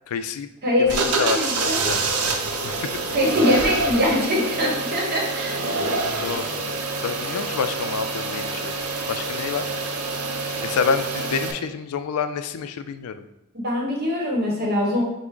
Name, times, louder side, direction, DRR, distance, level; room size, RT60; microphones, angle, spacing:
voice 1, 0.1-0.5 0.8-2.0 2.6-2.9 6.2-6.7 7.0-8.7 9.1-9.6 10.6-13.3, left 6 dB, 75° left, 10 dB, 0.4 m, -28 dB
voice 2, 0.6-1.9 3.1-5.6 10.8-10.9 13.5-15.0, left 1 dB, 45° right, -2 dB, 1.1 m, -23 dB
sound 1, 0.9-11.5, right 3 dB, 85° right, 0.6 m, -26 dB
5.9 x 2.1 x 3.7 m, 0.95 s
head